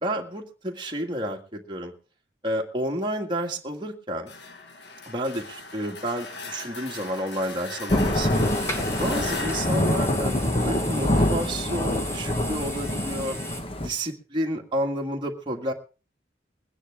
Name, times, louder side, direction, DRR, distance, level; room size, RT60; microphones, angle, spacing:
voice 1, 0.0-1.9 2.4-4.3 5.1-8.5 9.0-10.3 10.6-13.4 13.8-15.7, equal, 25° right, 1 dB, 1.9 m, -30 dB
sound 1, 4.3-11.0, left 3 dB, 70° left, 1.7 m, -39 dB
Thunder / Rain, 7.9-13.9, left 1 dB, 30° left, 1.2 m, -25 dB
sound 2, 8.3-13.6, equal, 15° left, 1.7 m, -37 dB
22.5 x 9.9 x 3.5 m, 0.34 s
head